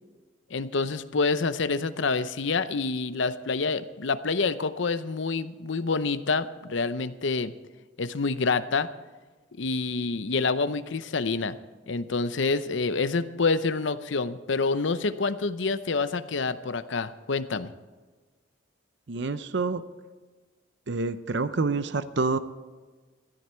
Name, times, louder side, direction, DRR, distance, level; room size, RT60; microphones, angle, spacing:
voice 1, 0.5-7.5 8.0-8.9 9.6-11.6 11.9-17.7, left 4 dB, 70° left, 13 dB, 0.7 m, -27 dB
voice 2, 19.1-19.8 20.9-22.4, right 3 dB, 60° right, 12 dB, 0.6 m, -27 dB
16.5 x 13.0 x 4.5 m, 1.4 s
head